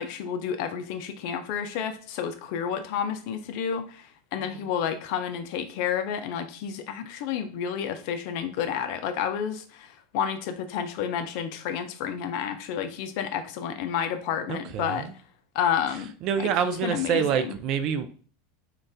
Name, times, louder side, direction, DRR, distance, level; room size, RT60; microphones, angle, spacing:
voice 1, 0.0-15.1 15.5-16.1 16.4-16.5 16.8-17.5, left 8 dB, 55° left, 8 dB, 0.4 m, -30 dB
voice 2, 14.5-15.1 16.2-18.3, right 7 dB, 50° right, 10 dB, 0.4 m, -27 dB
2.5 x 2.3 x 3.9 m, 0.41 s
hypercardioid pair, 85°, 0 cm